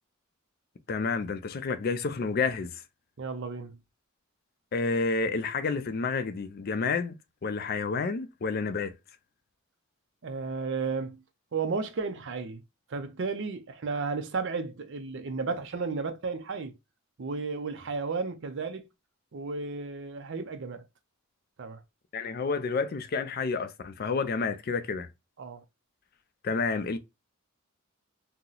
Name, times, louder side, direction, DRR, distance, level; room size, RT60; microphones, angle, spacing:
voice 1, 0.9-2.8 4.7-7.2 7.4-8.9 22.1-25.1 26.4-27.0, left 4 dB, 45° left, 0.4 m, -29 dB
voice 2, 3.2-3.8 10.2-11.2 11.5-12.6 12.9-16.7 17.2-18.9 19.3-20.8 21.6-21.8 25.4-25.6, right 4 dB, 60° right, 0.5 m, -33 dB
2.8 x 2.0 x 3.8 m
head